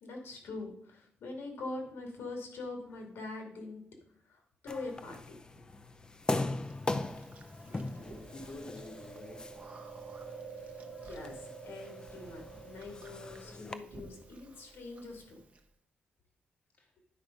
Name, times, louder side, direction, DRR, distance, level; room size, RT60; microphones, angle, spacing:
voice 1, 0.0-3.8 4.3-5.7 8.0-8.1 11.0-15.4, left 2 dB, 80° left, 3 dB, 2.3 m, -43 dB
sound 1, 4.7-13.7, left 2 dB, 20° left, 0.5 m, -40 dB
Chewing mastication, 6.6-15.6, right 5 dB, 35° right, 0.9 m, -50 dB
voice 2, 7.6-9.4 16.8-16.9, left 2 dB, 45° left, 1 dB, 1.1 m, -49 dB
10.0 x 4.7 x 5.2 m, 0.65 s
wide cardioid pair, 140°, 4 cm